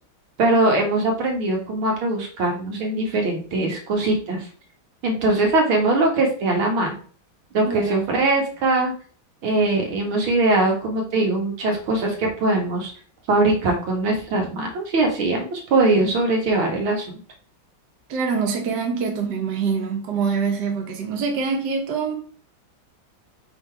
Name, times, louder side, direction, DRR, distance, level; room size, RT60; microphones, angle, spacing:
voice 1, 0.4-4.5 5.0-6.9 7.5-8.9 9.4-12.9 13.3-17.1, right 2 dB, 85° right, 2.5 m, -21 dB
voice 2, 7.7-8.0 18.1-22.2, right 5 dB, 60° right, 1.6 m, -25 dB
5.7 x 4.1 x 4.7 m
omnidirectional pair, 2.2 m